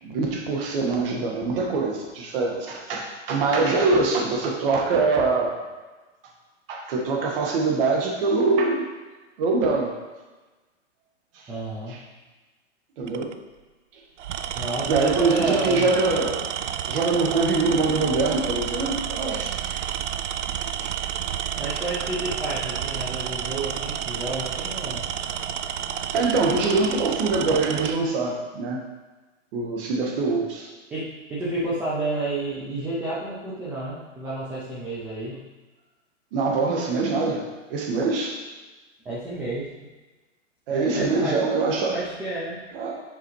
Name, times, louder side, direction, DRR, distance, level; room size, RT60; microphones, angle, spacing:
voice 1, 0.0-5.6 6.7-8.9 9.4-9.9 11.3-11.4 11.9-12.0 13.0-13.3 14.9-16.5 16.9-19.8 20.8-20.9 26.1-28.8 29.5-30.7 36.3-38.4 40.7-42.0 42.7-43.0, right 3 dB, 45° right, 0 dB, 1.6 m, -24 dB
voice 2, 11.5-12.0 14.6-15.9 21.5-25.1 30.9-35.4 39.0-39.7 40.7-41.5 41.9-42.6, right 2 dB, 5° right, -8 dB, 0.4 m, -30 dB
Tools, 13.0-13.3 14.2-28.0, right 9 dB, 65° right, 0.5 m, -30 dB
7.5 x 4.7 x 3.2 m, 1.2 s
hypercardioid pair, 130°, 38 cm